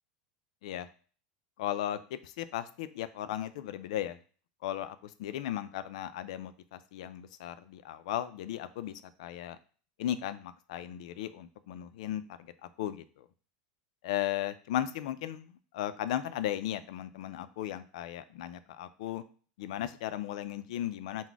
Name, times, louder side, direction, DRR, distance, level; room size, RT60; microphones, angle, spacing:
voice 1, 1.6-4.2 4.6-9.6 10.0-13.3 14.0-19.2 19.6-21.3, left 12 dB, 70° left, 13 dB, 0.3 m, -36 dB
4.0 x 2.1 x 4.5 m, 0.40 s
supercardioid pair, 170°, 4 cm